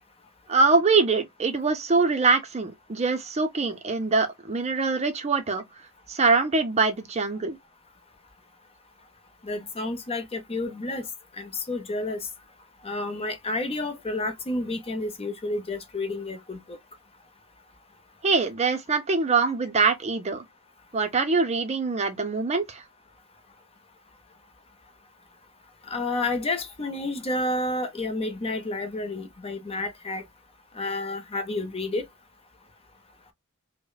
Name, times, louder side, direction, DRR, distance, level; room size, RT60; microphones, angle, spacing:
voice 1, 0.5-5.6 6.1-7.6 18.2-20.4 20.9-22.8, right 4 dB, 30° right, 0.6 m, -23 dB
voice 2, 9.4-11.0 11.4-12.3 12.8-16.8 25.9-30.2 30.7-32.1, left 2 dB, 25° left, 0.7 m, -30 dB
5.2 x 2.1 x 2.3 m
head